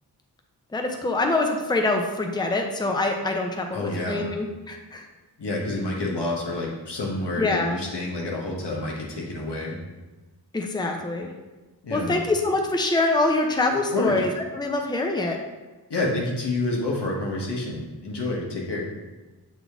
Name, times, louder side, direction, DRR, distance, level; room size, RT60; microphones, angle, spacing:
voice 1, 0.7-5.1 7.4-7.8 10.5-11.3 11.9-14.3 14.5-15.4, left 2 dB, 10° left, 3 dB, 0.6 m, -25 dB
voice 2, 3.7-4.3 5.4-9.8 11.8-12.2 13.7-14.2 15.9-18.8, left 2 dB, 80° left, -2 dB, 1.4 m, -28 dB
6.7 x 4.0 x 3.6 m, 1.2 s
wide cardioid pair, 65°, 41 cm